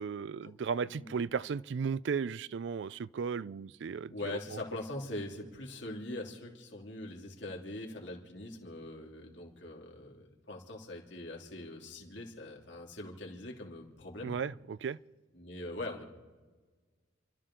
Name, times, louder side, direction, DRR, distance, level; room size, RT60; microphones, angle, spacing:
voice 1, 0.0-4.1 14.2-15.0, right 6 dB, 65° right, 0.4 m, -35 dB
voice 2, 0.8-1.2 4.1-14.4 15.3-16.1, left 1 dB, 65° left, 3.0 m, -42 dB
29.5 x 12.5 x 3.8 m
head